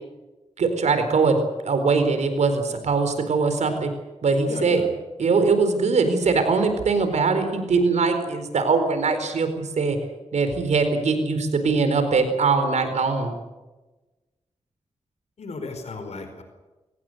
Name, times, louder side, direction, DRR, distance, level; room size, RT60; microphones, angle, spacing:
voice 1, 0.6-3.9 4.2-4.8 5.2-10.0 10.3-13.3, right 4 dB, 85° right, 8 dB, 4.4 m, -21 dB
voice 2, 4.5-4.9 15.4-16.4, left 3 dB, 70° left, 6 dB, 4.6 m, -34 dB
24.5 x 19.0 x 8.0 m, 1.1 s
cardioid pair, 75°, 12 cm